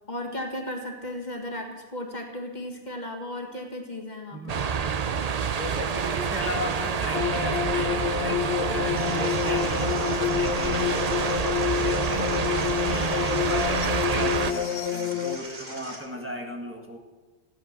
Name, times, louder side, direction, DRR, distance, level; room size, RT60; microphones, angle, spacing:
voice 1, 0.1-4.4, left 1 dB, 45° left, 2 dB, 1.8 m, -35 dB
voice 2, 4.3-4.6 5.6-11.5 11.8-17.0, equal, 10° right, 0 dB, 1.9 m, -36 dB
sound 1, 4.5-14.5, right 6 dB, 45° right, 0.6 m, -27 dB
sound 2, 7.1-15.4, left 10 dB, 85° left, 1.0 m, -28 dB
sound 3, 9.0-16.0, right 2 dB, 60° right, 2.8 m, -41 dB
15.5 x 10.5 x 6.7 m, 1.3 s
omnidirectional pair, 1.1 m